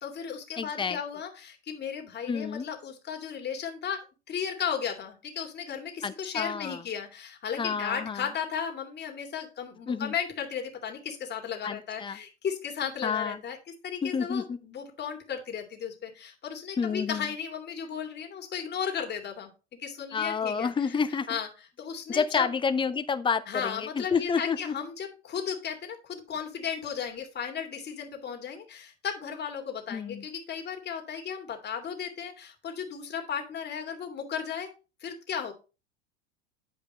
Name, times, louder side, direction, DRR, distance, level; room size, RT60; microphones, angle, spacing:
voice 1, 0.0-4.0 4.3-13.6 13.8-21.0 21.3-21.5 21.8-22.5 23.5-34.7 35.0-35.5, left 7 dB, 30° left, 2.4 m, -35 dB
voice 2, 0.6-1.0 2.3-2.7 6.0-6.8 7.6-8.3 9.9-10.1 11.6-12.2 13.0-13.4 14.0-14.6 16.8-17.3 20.1-21.4 22.1-24.7 29.9-30.2, left 5 dB, 15° left, 0.7 m, -29 dB
10.0 x 5.1 x 4.2 m
hypercardioid pair, 85°, 33 cm